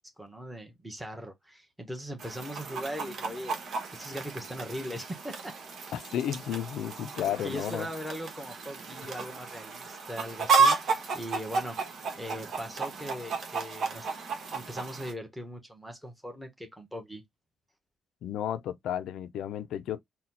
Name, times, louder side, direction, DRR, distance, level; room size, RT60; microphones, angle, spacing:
voice 1, 0.2-3.6 3.9-5.6 7.2-11.8 12.2-14.1 14.5-17.2, equal, 5° right, 1.3 m, -40 dB
Chicken rooster, 2.2-15.1, right 5 dB, 60° right, 1.1 m, -32 dB
voice 2, 5.9-7.9 18.2-20.0, left 10 dB, 80° left, 0.5 m, -33 dB
4.2 x 2.3 x 4.1 m
cardioid pair, 90°, 0 cm